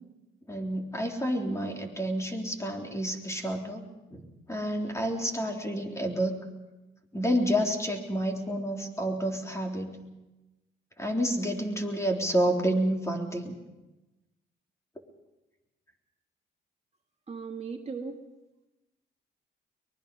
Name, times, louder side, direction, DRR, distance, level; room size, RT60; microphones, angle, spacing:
voice 1, 0.5-3.9 4.1-6.3 7.1-10.0 11.0-13.6, equal, 15° left, 2 dB, 3.6 m, -29 dB
voice 2, 17.3-18.2, right 5 dB, 30° right, 3 dB, 1.8 m, -37 dB
23.5 x 21.0 x 5.4 m, 1.1 s
cardioid pair, 90°, 20 cm